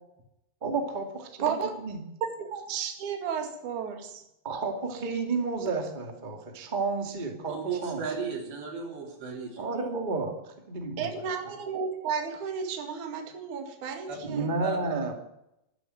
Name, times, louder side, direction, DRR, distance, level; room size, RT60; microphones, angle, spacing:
voice 1, 0.6-1.0 1.5-2.0 4.4-8.0 9.6-11.3 14.2-15.2, right 3 dB, 30° right, 3 dB, 0.8 m, -31 dB
voice 2, 1.4-1.7 2.2-4.2 11.0-14.5, right 6 dB, 50° right, 4 dB, 3.1 m, -33 dB
voice 3, 7.5-9.7 14.1-14.2 14.6-14.8, right 6 dB, 75° right, 1 dB, 5.9 m, -35 dB
13.5 x 11.0 x 9.4 m, 0.85 s
omnidirectional pair, 5.1 m